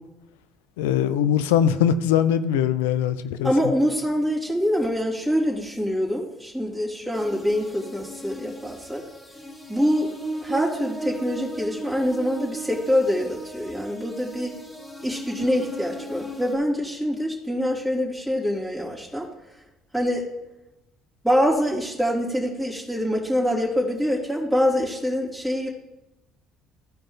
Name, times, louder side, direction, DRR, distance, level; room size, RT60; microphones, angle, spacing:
voice 1, 0.8-3.7, left 9 dB, 85° left, 13 dB, 0.4 m, -21 dB
voice 2, 3.4-9.0 9.7-10.1 10.4-14.5 15.0-19.3 19.9-20.3 21.2-25.7, equal, 5° left, -5 dB, 3.2 m, -25 dB
sound 1, 7.1-16.6, right 1 dB, 20° left, 2.1 m, -37 dB
14.0 x 5.0 x 3.9 m, 0.94 s
hypercardioid pair, 65°, 0 cm